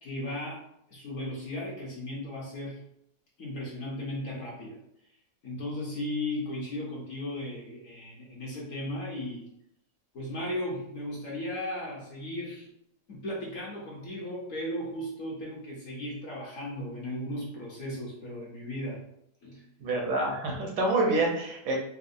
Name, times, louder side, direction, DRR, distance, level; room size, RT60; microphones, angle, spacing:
voice 1, 0.0-0.6 0.9-2.8 3.4-4.8 5.4-9.4 10.1-12.7 13.1-19.0 19.4-19.6, left 1 dB, 55° left, -4 dB, 1.1 m, -36 dB
voice 2, 19.8-21.8, right 2 dB, 75° right, 0 dB, 1.4 m, -27 dB
4.2 x 2.1 x 2.6 m, 0.75 s
omnidirectional pair, 1.9 m